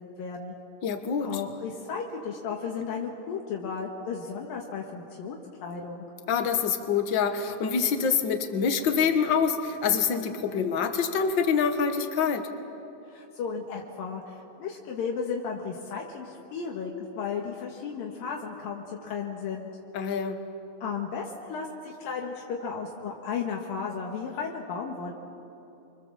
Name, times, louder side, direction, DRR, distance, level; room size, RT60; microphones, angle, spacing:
voice 1, 0.2-0.5 1.2-6.0 13.1-19.7 20.8-25.1, left 5 dB, 75° left, 0 dB, 3.3 m, -34 dB
voice 2, 0.8-1.3 6.3-12.5 19.9-20.4, left 6 dB, 55° left, 7 dB, 1.3 m, -26 dB
29.0 x 25.0 x 7.4 m, 2.9 s
omnidirectional pair, 4.1 m